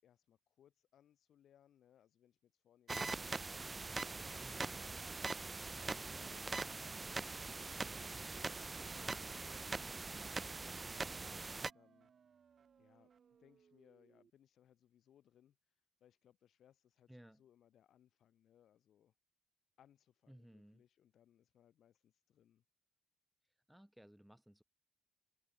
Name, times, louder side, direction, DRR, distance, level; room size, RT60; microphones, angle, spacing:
voice 1, 0.0-5.0 5.6-8.1 8.9-12.1 12.8-13.1 13.4-15.6 16.0-19.1 19.8-22.6, left 10 dB, 60° left, 7.5 m, -70 dB
sound 1, 2.9-11.7, right 3 dB, 20° right, 0.6 m, -42 dB
sound 2, 4.3-14.3, right 7 dB, 40° right, 5.5 m, -68 dB
voice 2, 4.4-4.8 5.7-6.0 8.9-9.4 17.1-17.4 20.3-20.8 23.7-24.6, equal, ahead, 1.6 m, -60 dB
cardioid pair, 130°, 0 cm